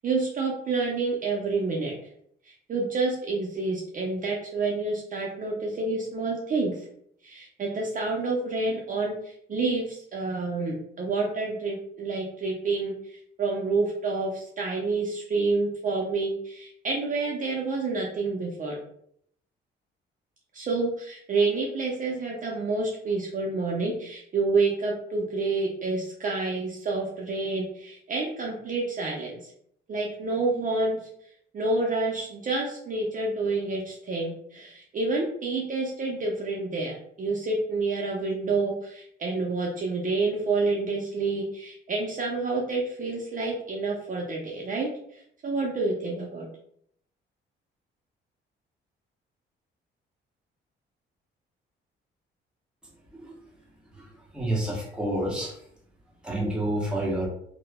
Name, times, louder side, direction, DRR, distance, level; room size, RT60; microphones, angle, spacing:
voice 1, 0.0-1.9 2.5-6.9 7.2-18.8 20.5-29.5 29.9-31.0 31.5-46.5, right 3 dB, 40° right, -1 dB, 0.5 m, -28 dB
voice 2, 54.3-55.5 56.2-57.3, right 1 dB, 5° right, -4 dB, 1.0 m, -28 dB
3.0 x 2.0 x 2.2 m, 0.67 s
cardioid pair, 90°, 20 cm